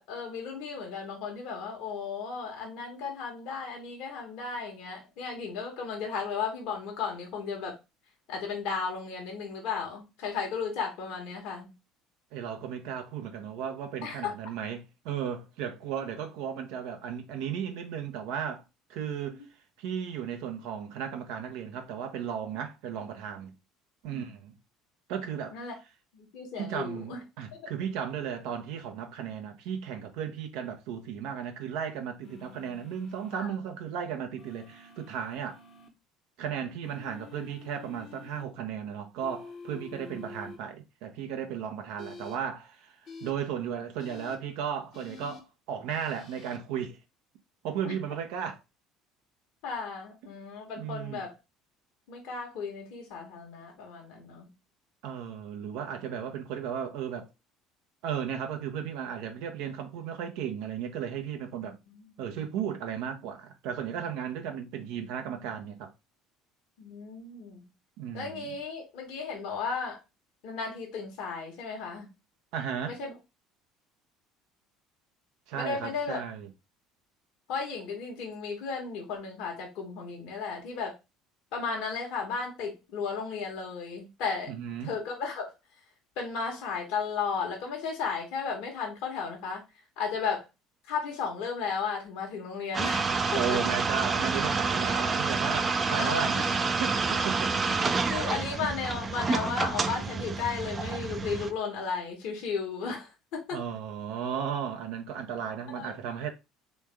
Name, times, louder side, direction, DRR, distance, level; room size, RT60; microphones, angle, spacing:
voice 1, 0.0-7.7 8.3-11.7 14.0-14.3 24.1-24.3 25.5-25.7 26.1-27.2 27.5-27.6 33.3-33.5 40.1-40.2 47.8-47.9 49.6-51.3 52.1-54.5 61.9-62.1 66.8-67.6 68.1-70.0 70.4-72.1 72.9-73.2 75.5-76.2 77.5-80.9 81.5-84.5 84.8-85.5 86.2-89.6 90.0-90.5 90.9-93.6 95.9-96.5 98.0-103.6 105.7-105.9, left 5 dB, 65° left, 1.2 m, -34 dB
voice 2, 12.3-18.6 18.9-19.4 19.8-23.5 24.0-24.5 25.1-25.7 26.5-35.6 36.4-42.9 43.2-47.0 47.6-48.6 50.8-51.2 55.0-57.3 58.0-61.8 62.2-65.9 68.0-68.5 72.5-73.0 75.5-76.5 84.5-84.9 93.3-96.4 96.8-97.6 103.5-106.3, right 8 dB, 70° right, 0.8 m, -35 dB
sound 1, 32.2-33.5 34.4-35.9 36.8-38.4 39.2-40.6 42.0-42.4 43.0-43.3 44.0-44.4 44.9-45.4 45.9-46.6, left 5 dB, 45° left, 0.9 m, -48 dB
sound 2, 92.7-101.5, right 4 dB, 30° right, 0.5 m, -28 dB
3.5 x 3.2 x 3.3 m
hypercardioid pair, 65°, 0 cm